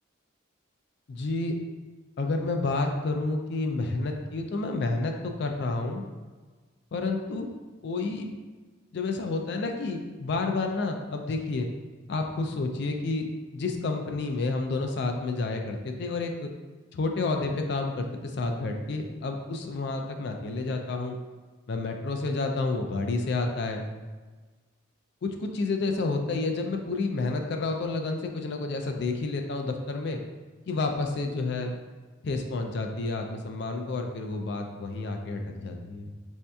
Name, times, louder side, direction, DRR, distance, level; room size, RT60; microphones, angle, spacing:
voice 1, 1.1-1.5 2.2-6.1 6.9-7.5 7.8-8.3 8.9-11.7 12.1-13.3 13.5-16.5 16.9-21.2 21.7-23.8 25.2-30.2 30.7-31.7 32.2-36.1, left 3 dB, 55° left, 4 dB, 0.3 m, -30 dB
4.2 x 2.7 x 2.3 m, 1.3 s
head